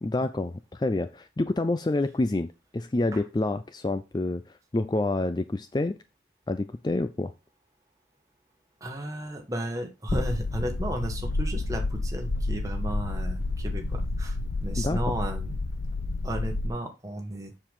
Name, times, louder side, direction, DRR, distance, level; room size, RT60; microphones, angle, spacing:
voice 1, 0.0-6.0 6.5-7.3 14.8-15.0, left 2 dB, 25° left, 0.4 m, -28 dB
voice 2, 8.8-15.6 16.2-17.6, right 1 dB, 20° right, 1.7 m, -34 dB
sound 1, 10.1-16.7, left 2 dB, 85° left, 0.8 m, -30 dB
7.3 x 6.7 x 3.7 m
head